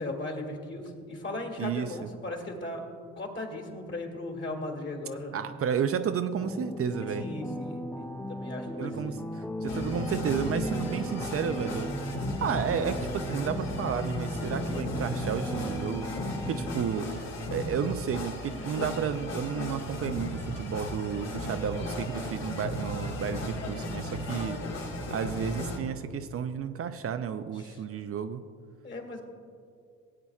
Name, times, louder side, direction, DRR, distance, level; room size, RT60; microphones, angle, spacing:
voice 1, 0.0-2.9 3.2-5.4 7.2-9.2 27.5-27.8 28.8-29.2, left 2 dB, 40° left, 2 dB, 2.1 m, -37 dB
voice 2, 1.6-2.0 5.3-7.2 8.8-9.2 9.6-11.9 12.4-16.1 16.5-17.1 17.5-24.6 25.1-28.4, right 7 dB, 50° right, 9 dB, 0.5 m, -32 dB
sound 1, 6.4-16.8, left 1 dB, 5° left, 0.3 m, -37 dB
sound 2, 9.7-25.8, left 1 dB, 60° left, 1.8 m, -35 dB
18.0 x 8.5 x 2.4 m, 2.3 s
cardioid pair, 90°, 30 cm